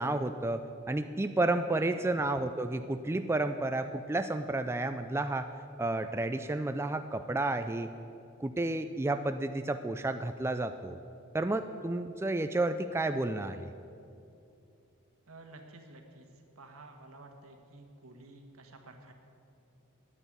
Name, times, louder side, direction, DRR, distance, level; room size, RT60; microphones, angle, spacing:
voice 1, 0.0-5.5 5.8-7.9 8.4-11.0 11.3-13.7, right 2 dB, 10° right, 8 dB, 0.3 m, -31 dB
voice 2, 15.3-16.3 16.5-19.1, right 2 dB, 80° right, 4 dB, 1.6 m, -52 dB
9.8 x 9.3 x 9.3 m, 2.6 s
head